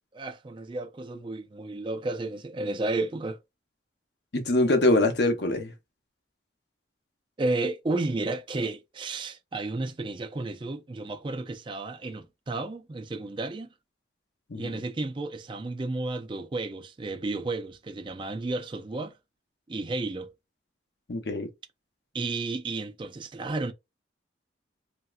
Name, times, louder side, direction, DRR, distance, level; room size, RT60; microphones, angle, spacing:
voice 1, 0.1-3.4 7.4-13.7 14.5-19.2 19.7-20.3 22.1-23.7, right 2 dB, 25° right, 0.4 m, -32 dB
voice 2, 4.3-5.7 14.5-14.8 21.1-21.5, left 2 dB, 60° left, 0.7 m, -24 dB
3.1 x 2.7 x 2.4 m
head